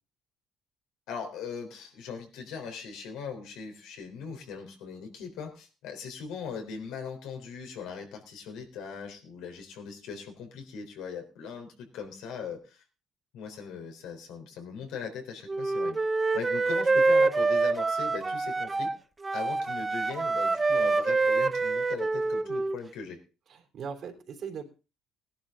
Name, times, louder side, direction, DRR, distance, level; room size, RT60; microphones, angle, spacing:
voice 1, 1.1-12.8 13.3-16.0 16.3-18.9 19.3-23.2, left 6 dB, 80° left, 4 dB, 3.9 m, -40 dB
Wind instrument woodwind instrument, 15.5-19.0 19.2-22.8, right 3 dB, 20° right, 0.6 m, -26 dB
voice 2, 23.5-24.6, right 6 dB, 55° right, 3 dB, 3.3 m, -39 dB
18.0 x 11.5 x 3.8 m, 0.33 s
cardioid pair, 110°, 0 cm